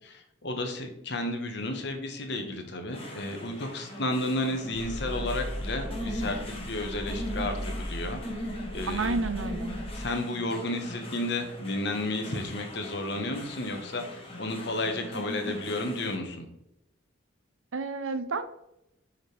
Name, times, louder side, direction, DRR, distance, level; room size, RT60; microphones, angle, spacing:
voice 1, 0.4-8.2 8.7-9.2 9.9-16.5, left 2 dB, 55° left, 4 dB, 1.3 m, -32 dB
sound 1, 2.9-16.2, left 1 dB, 30° left, 1.6 m, -40 dB
sound 2, 4.7-10.0, equal, 90° left, 1.4 m, -37 dB
voice 2, 8.9-9.7 17.7-18.5, right 3 dB, 85° right, 10 dB, 0.7 m, -30 dB
6.9 x 5.8 x 3.4 m, 0.83 s
head